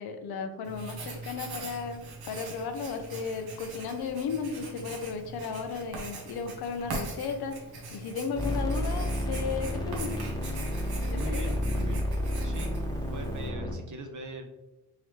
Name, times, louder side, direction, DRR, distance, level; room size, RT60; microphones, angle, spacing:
voice 1, 0.0-7.6 7.9-10.3 11.1-11.4, left 5 dB, 75° left, 6 dB, 0.7 m, -35 dB
Writing, 0.6-13.5, right 2 dB, 75° right, 1.0 m, -42 dB
sound 1, 8.4-13.7, equal, 10° left, 1.0 m, -31 dB
voice 2, 11.1-12.0 12.4-14.5, right 1 dB, 50° right, 4 dB, 0.9 m, -41 dB
3.7 x 3.1 x 3.1 m, 1.0 s
supercardioid pair, 50°, 38 cm